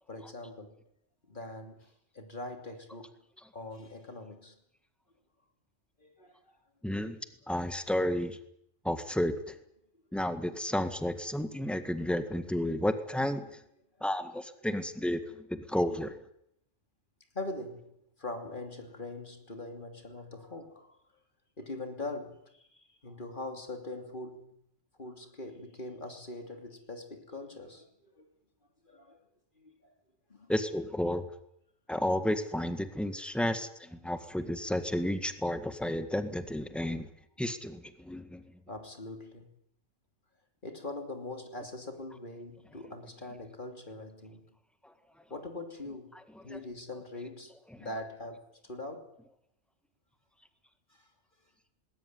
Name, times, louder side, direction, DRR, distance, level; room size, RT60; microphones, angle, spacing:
voice 1, 0.1-0.8 1.3-3.2 3.5-4.6 6.0-6.6 14.3-14.4 17.3-21.0 21.6-24.6 25.0-28.3 28.8-29.2 29.6-29.9 30.3-30.5 38.7-39.5 40.6-44.5 45.3-46.1 46.4-49.2 50.9-51.1, left 2 dB, 40° left, 3.1 m, -42 dB
voice 2, 6.8-7.2 7.5-8.4 8.8-9.6 10.1-13.6 14.0-16.2 30.5-31.2 31.9-37.1 37.4-38.4, left 1 dB, ahead, 1.7 m, -32 dB
20.0 x 18.5 x 9.5 m
omnidirectional pair, 1.3 m